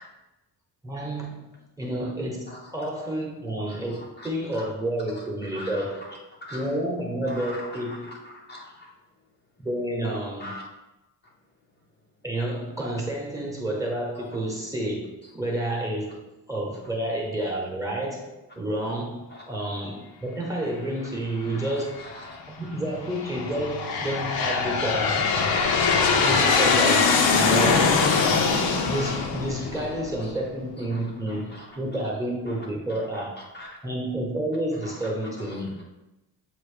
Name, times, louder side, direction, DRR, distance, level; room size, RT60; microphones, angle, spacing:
voice 1, 0.8-6.1 6.5-8.2 9.6-10.5 12.2-15.1 15.3-16.2 16.5-22.1 22.5-25.3 26.2-27.8 28.8-33.3 33.8-35.8, right 1 dB, 10° right, -1 dB, 1.0 m, -30 dB
voice 2, 3.7-4.7 5.5-6.2 6.5-6.7 7.3-8.9 10.4-10.6 19.3-19.4 21.6-22.4 23.8-23.9 29.7-30.3 30.9-31.0 31.3-31.7 32.5-32.6 32.9-33.8 34.8-34.9 35.4-35.5, left 1 dB, 25° left, -3 dB, 0.7 m, -42 dB
Aircraft, 21.5-22.1 22.8-30.4, left 5 dB, 65° left, 0.9 m, -22 dB
7.4 x 3.0 x 4.9 m, 0.98 s
cardioid pair, 180°, 39 cm